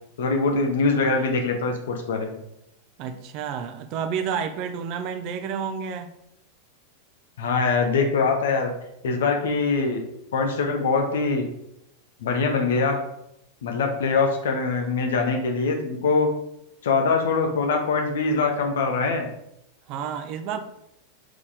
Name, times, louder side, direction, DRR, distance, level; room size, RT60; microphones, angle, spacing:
voice 1, 0.2-2.4 7.4-8.7 9.0-10.0 10.3-11.4 12.2-13.0 13.6-16.3 16.8-19.3, left 4 dB, 60° left, 3 dB, 0.8 m, -23 dB
voice 2, 3.0-6.1 19.9-20.6, right 7 dB, 40° right, 7 dB, 0.7 m, -30 dB
4.8 x 4.1 x 4.9 m, 0.79 s
figure-of-eight pair, 90°, 0 cm